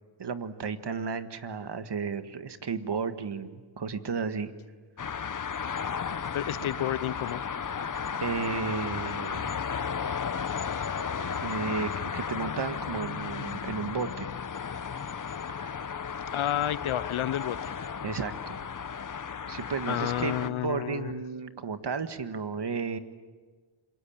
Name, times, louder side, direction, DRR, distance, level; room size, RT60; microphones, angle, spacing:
voice 1, 0.2-4.5 7.8-9.6 11.1-14.3 15.5-15.6 18.0-18.6 19.4-23.0, right 5 dB, 55° right, 1.7 m, -33 dB
sound 1, 5.0-20.5, left 6 dB, 40° left, 1.0 m, -34 dB
voice 2, 6.3-7.4 16.3-17.6 19.9-21.1, left 12 dB, 80° left, 0.8 m, -30 dB
26.5 x 23.0 x 8.8 m
cardioid pair, 70°, 49 cm